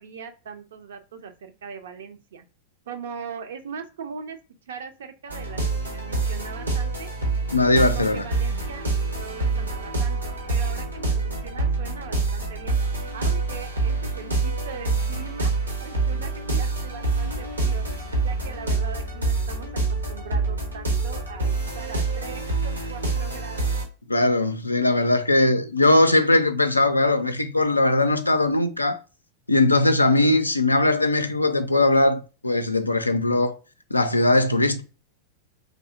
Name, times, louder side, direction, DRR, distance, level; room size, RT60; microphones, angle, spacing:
voice 1, 0.0-2.5 2.9-4.4 4.7-7.1 7.7-12.8 13.1-17.8 18.2-23.8, right 6 dB, 60° right, 0.5 m, -40 dB
sound 1, 5.3-23.9, right 3 dB, 80° right, 0.9 m, -26 dB
voice 2, 7.5-8.3 24.1-29.0 29.5-33.6 33.9-34.8, left 2 dB, 85° left, 0.4 m, -20 dB
3.5 x 2.7 x 2.4 m
figure-of-eight pair, 90°, 0 cm